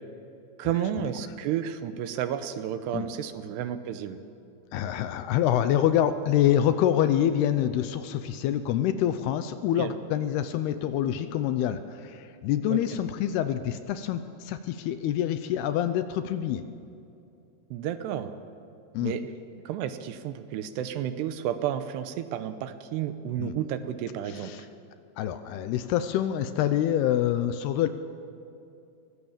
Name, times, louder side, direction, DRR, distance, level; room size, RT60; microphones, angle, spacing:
voice 1, 0.6-4.2 9.8-9.9 12.7-12.8 17.7-18.3 19.0-19.3 19.7-24.5, right 10 dB, 80° right, 10 dB, 2.8 m, -31 dB
voice 2, 4.7-16.6 18.9-19.2 23.4-23.6 24.3-24.7 25.2-27.9, left 11 dB, 80° left, 11 dB, 2.5 m, -26 dB
23.0 x 17.5 x 7.3 m, 2.6 s
omnidirectional pair, 5.0 m